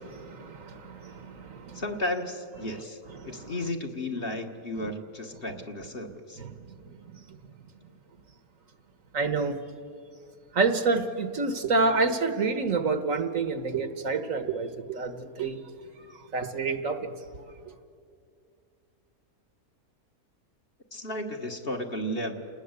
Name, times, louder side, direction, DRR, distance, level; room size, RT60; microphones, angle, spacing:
voice 1, 0.0-1.8 2.6-2.8 3.2-3.5 4.8-4.9 6.4-7.4 9.1-9.6 10.5-15.6 16.1-17.1, right 4 dB, 60° right, 1.6 m, -29 dB
voice 2, 1.7-3.0 3.3-6.4 20.9-22.4, left 1 dB, 40° left, 1.9 m, -33 dB
29.0 x 19.5 x 8.2 m
omnidirectional pair, 1.6 m